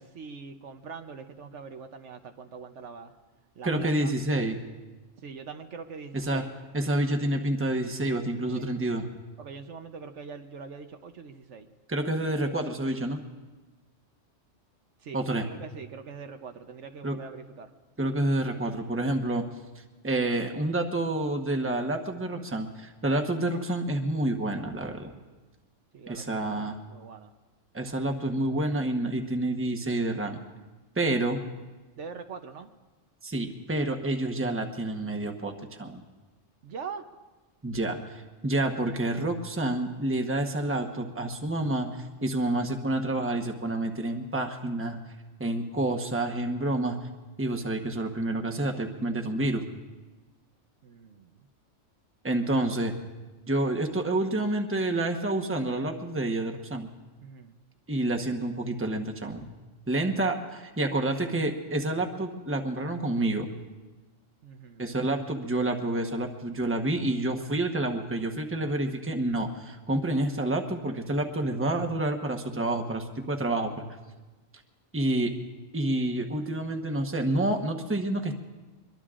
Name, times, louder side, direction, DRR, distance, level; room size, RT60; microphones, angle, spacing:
voice 1, 0.0-3.1 3.6-4.1 5.2-6.5 8.5-8.7 9.4-11.7 15.0-15.2 15.4-17.7 23.1-23.3 25.9-27.3 32.0-32.7 36.6-37.1 50.8-51.4 57.2-57.5 60.0-60.3 64.4-65.1, right 5 dB, 70° right, 7 dB, 1.2 m, -43 dB
voice 2, 3.6-4.6 6.1-6.4 6.7-9.0 11.9-13.2 15.1-15.5 17.0-17.2 18.0-19.5 20.0-25.1 26.1-26.8 27.7-30.4 30.9-31.4 33.2-35.5 35.8-36.0 37.6-45.0 45.4-47.0 47.4-49.6 52.2-52.9 53.5-56.9 57.9-59.5 59.9-63.5 64.8-73.8 74.9-75.3 75.7-78.3, right 1 dB, 10° right, 4 dB, 1.0 m, -28 dB
24.5 x 22.5 x 2.5 m, 1.2 s
omnidirectional pair, 1.3 m